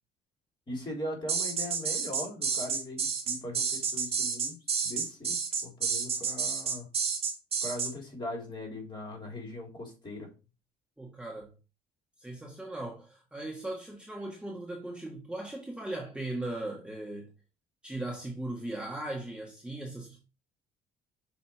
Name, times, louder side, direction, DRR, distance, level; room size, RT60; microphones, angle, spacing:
voice 1, 0.7-4.6 4.8-5.4 5.6-6.9 7.6-10.3, left 1 dB, 25° left, 3.5 m, -40 dB
sound 1, 1.3-7.9, right 6 dB, 35° right, 2.6 m, -30 dB
voice 2, 11.0-11.5 12.2-17.3 17.8-20.2, right 1 dB, 5° right, 1.6 m, -38 dB
6.2 x 4.9 x 4.5 m
cardioid pair, 110°, 17 cm